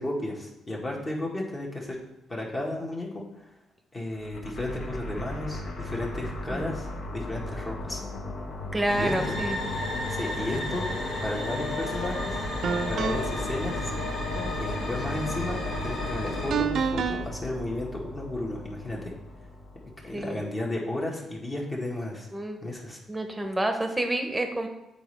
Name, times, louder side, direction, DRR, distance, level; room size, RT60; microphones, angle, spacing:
voice 1, 0.0-2.0 2.3-3.2 3.9-8.0 9.0-9.4 10.1-10.8 11.2-12.4 12.9-13.9 14.6-19.1 19.8-22.3 22.6-23.0, left 1 dB, 30° left, -3 dB, 1.5 m, -33 dB
sound 1, 4.1-20.3, left 1 dB, 55° left, 0.9 m, -36 dB
voice 2, 8.7-9.6 14.3-14.5 20.1-20.4 22.3-22.6 23.1-24.7, right 1 dB, 15° right, 5 dB, 0.9 m, -29 dB
sound 2, 8.9-16.5, left 2 dB, 80° left, 1.6 m, -33 dB
sound 3, 11.8-12.0 12.6-13.4 16.5-17.2, right 6 dB, 65° right, 0.5 m, -28 dB
8.1 x 4.1 x 3.3 m, 0.91 s
cardioid pair, 90°, 0 cm